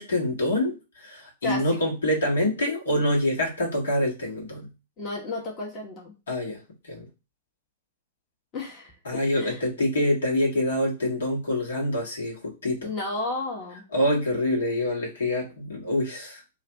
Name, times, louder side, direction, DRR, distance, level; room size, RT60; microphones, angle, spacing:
voice 1, 0.0-4.7 6.3-7.1 9.0-12.9 13.9-16.4, left 1 dB, 70° left, -2 dB, 1.5 m, -26 dB
voice 2, 5.0-6.1 8.5-8.9 9.4-9.6 12.8-13.8, left 2 dB, 30° left, -2 dB, 1.2 m, -32 dB
3.2 x 2.5 x 4.4 m, 0.30 s
figure-of-eight pair, 100°, 0 cm